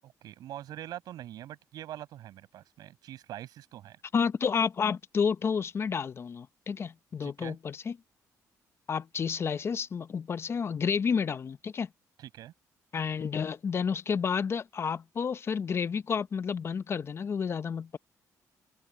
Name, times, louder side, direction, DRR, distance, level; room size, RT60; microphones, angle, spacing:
voice 1, 0.0-4.0 7.2-7.6 12.2-12.5, right 12 dB, 80° right, 7.0 m, -44 dB
voice 2, 4.1-8.0 8.9-11.9 12.9-18.0, left 6 dB, 40° left, 0.7 m, -30 dB
open air
cardioid pair, 110°, 7 cm